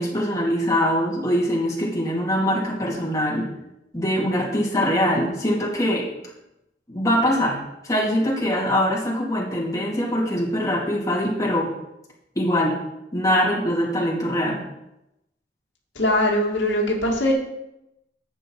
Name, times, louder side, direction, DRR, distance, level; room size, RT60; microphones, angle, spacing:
voice 1, 0.0-3.5 3.9-6.1 6.9-7.6 7.8-11.7 12.3-12.8 13.1-14.6, equal, 20° left, -4 dB, 2.8 m, -23 dB
voice 2, 16.0-17.3, left 1 dB, 85° left, -1 dB, 2.1 m, -21 dB
10.5 x 8.2 x 4.7 m, 0.89 s
head